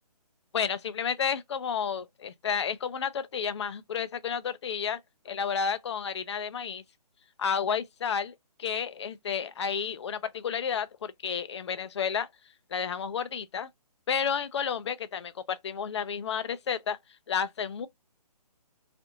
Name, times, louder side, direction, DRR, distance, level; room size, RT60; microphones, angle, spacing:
voice 1, 0.5-5.0 5.3-6.8 7.4-12.3 12.7-13.7 14.1-17.0 17.3-17.9, left 7 dB, 45° left, 0.4 m, -31 dB
2.8 x 2.5 x 2.5 m
hypercardioid pair, 160°, 20 cm